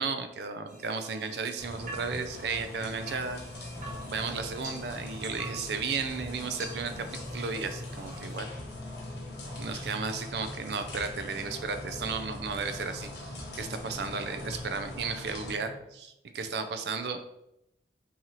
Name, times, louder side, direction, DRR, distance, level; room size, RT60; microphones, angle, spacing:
voice 1, 0.0-3.7 4.0-7.1 7.3-8.5 9.6-17.2, right 5 dB, 70° right, 8 dB, 0.4 m, -34 dB
sound 1, 0.7-8.4, right 2 dB, 45° right, 1.0 m, -47 dB
sound 2, 1.6-15.6, left 1 dB, 75° left, 0.8 m, -42 dB
sound 3, 3.8-15.8, left 1 dB, 10° left, 0.5 m, -46 dB
3.9 x 2.8 x 3.0 m, 0.83 s
head